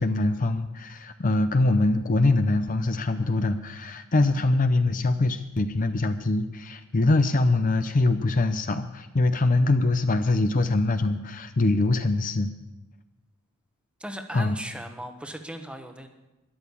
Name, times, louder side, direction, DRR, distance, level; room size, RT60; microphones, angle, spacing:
voice 1, 0.0-12.5 14.3-14.6, left 2 dB, 40° left, 9 dB, 0.6 m, -23 dB
voice 2, 14.0-16.1, right 1 dB, 5° right, 6 dB, 1.1 m, -37 dB
13.0 x 11.5 x 7.1 m, 1.0 s
head